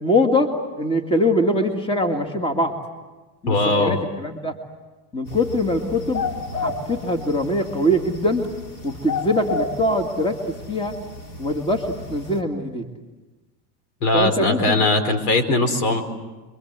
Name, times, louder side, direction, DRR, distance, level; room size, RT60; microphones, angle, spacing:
voice 1, 0.0-0.5 0.8-2.7 3.4-4.5 5.1-6.2 6.6-8.4 8.8-10.9 11.4-11.8 12.1-12.8 14.1-14.9, left 1 dB, 10° left, 5 dB, 2.1 m, -22 dB
voice 2, 3.5-4.0 14.0-16.0, left 2 dB, 75° left, 8 dB, 4.7 m, -20 dB
sound 1, 5.2-12.4, left 3 dB, 40° left, 3.8 m, -32 dB
28.0 x 23.5 x 8.2 m, 1.2 s
supercardioid pair, 130°, 48 cm